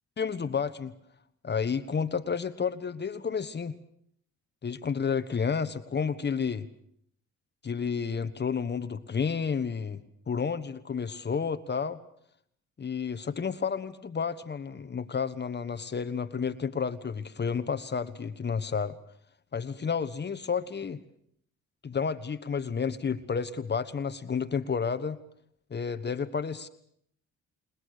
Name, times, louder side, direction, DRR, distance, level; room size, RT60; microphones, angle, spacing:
voice 1, 0.2-0.9 1.4-3.7 4.6-6.7 7.6-10.0 10.3-12.0 12.8-19.0 19.5-21.0 21.8-25.2 25.7-26.7, left 6 dB, 35° left, 11 dB, 1.3 m, -31 dB
28.5 x 19.5 x 6.7 m, 0.68 s
cardioid pair, 90°, 30 cm